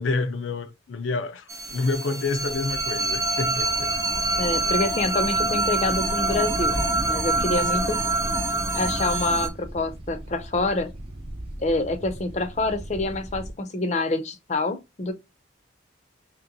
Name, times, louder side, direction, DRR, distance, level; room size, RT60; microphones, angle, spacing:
voice 1, 0.0-3.9, left 3 dB, 85° left, 0.5 m, -28 dB
sound 1, 1.5-9.5, right 2 dB, 15° right, 0.4 m, -25 dB
sound 2, 3.6-13.5, right 1 dB, 30° right, 0.9 m, -40 dB
voice 2, 4.4-6.8 7.1-8.0 8.7-10.9 11.6-15.1, left 2 dB, 35° left, 0.5 m, -26 dB
3.0 x 2.9 x 3.9 m
head